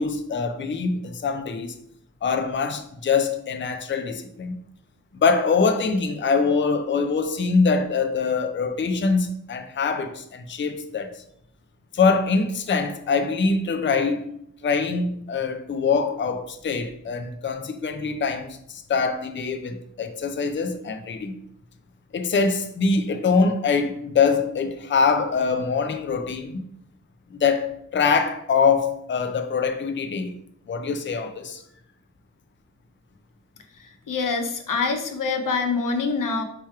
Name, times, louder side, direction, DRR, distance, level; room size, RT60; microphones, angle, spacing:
voice 1, 0.0-1.7 2.2-4.6 5.1-11.2 11.9-14.3 14.6-21.3 22.1-26.6 27.3-30.3 30.7-31.6, left 5 dB, 40° left, 0.4 m, -24 dB
voice 2, 33.8-36.4, left 4 dB, 90° left, 0.6 m, -25 dB
3.2 x 3.0 x 4.6 m
wide cardioid pair, 85°, 31 cm